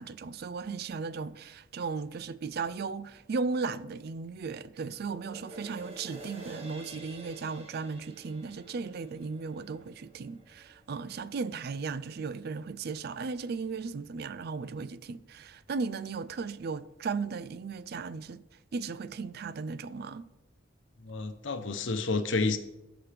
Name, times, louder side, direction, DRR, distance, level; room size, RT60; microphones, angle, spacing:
voice 1, 0.0-18.4 18.7-20.3, right 4 dB, 55° right, 0.4 m, -36 dB
sound 1, 5.0-11.6 12.0-12.1, right 2 dB, 30° right, 1.5 m, -50 dB
voice 2, 21.0-22.6, left 3 dB, 70° left, 0.8 m, -30 dB
14.5 x 6.0 x 3.4 m
head